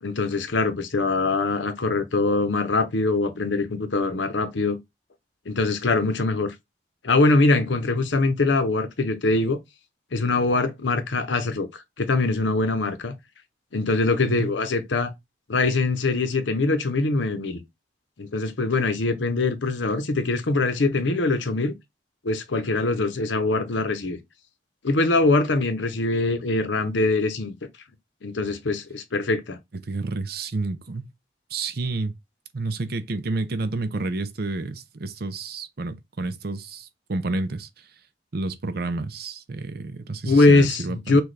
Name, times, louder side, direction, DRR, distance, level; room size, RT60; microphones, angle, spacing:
voice 1, 0.0-4.8 5.5-6.5 7.0-9.6 10.1-13.1 13.7-15.1 15.5-17.6 18.2-21.7 22.2-24.2 24.8-27.5 28.2-29.6 40.2-41.2, left 3 dB, 80° left, 0.8 m, -23 dB
voice 2, 14.2-14.6 29.8-31.1 31.5-32.1 32.5-37.9 38.3-41.2, right 3 dB, 55° right, 0.6 m, -30 dB
6.1 x 2.4 x 3.2 m
head